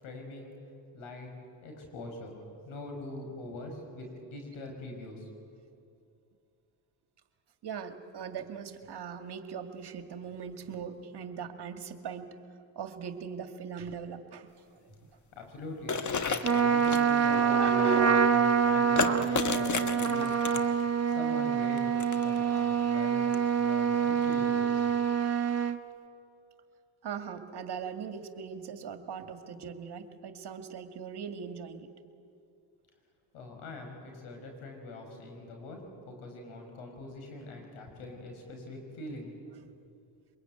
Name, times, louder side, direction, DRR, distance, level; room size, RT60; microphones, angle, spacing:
voice 1, 0.0-0.6 0.9-1.3 1.6-2.4 2.6-5.3 15.3-21.8 22.1-23.2 23.6-24.8 33.3-39.4, left 2 dB, 80° left, 3 dB, 5.9 m, -43 dB
voice 2, 7.6-12.3 12.8-14.9 17.3-18.4 20.2-20.3 22.3-22.4 27.0-31.9, right 6 dB, 55° right, 7 dB, 2.1 m, -38 dB
sound 1, 15.9-17.1 19.0-20.8 21.8-22.4 23.3-23.4 24.2-24.3, left 5 dB, 35° left, 1.5 m, -31 dB
Trumpet, 16.4-25.8, right 7 dB, 30° right, 1.3 m, -26 dB
23.5 x 22.0 x 9.4 m, 2.5 s
supercardioid pair, 75°, 49 cm